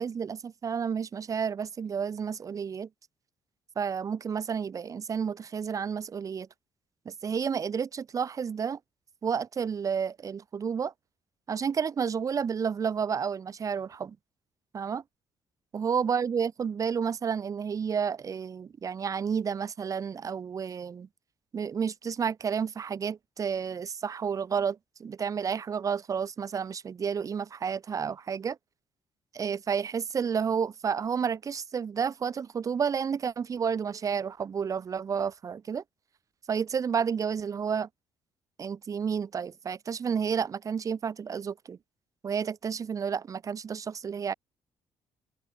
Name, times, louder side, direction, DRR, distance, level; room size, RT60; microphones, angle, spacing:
voice 1, 0.0-2.9 3.8-6.5 7.1-8.8 9.2-10.9 11.5-14.2 14.7-15.0 15.7-21.1 21.5-28.6 29.3-35.8 36.5-37.9 38.6-41.8 42.2-44.3, right 6 dB, 35° right, 2.0 m, -31 dB
open air
cardioid pair, 150°, 10 cm